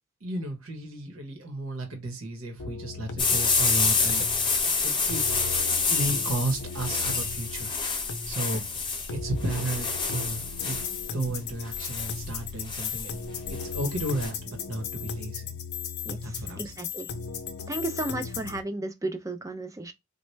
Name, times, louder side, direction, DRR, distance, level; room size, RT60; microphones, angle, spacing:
voice 1, 0.2-5.3 5.9-7.9 8.3-10.8 11.1-13.2 13.5-15.6 16.2-16.7, right 1 dB, 70° right, 0.9 m, -33 dB
sound 1, 2.6-18.6, left 5 dB, 85° left, 0.7 m, -37 dB
sound 2, 3.2-14.3, left 4 dB, 20° left, 0.7 m, -28 dB
voice 2, 16.5-17.1 17.7-19.9, right 2 dB, 15° right, 0.4 m, -33 dB
4.1 x 2.1 x 3.2 m
head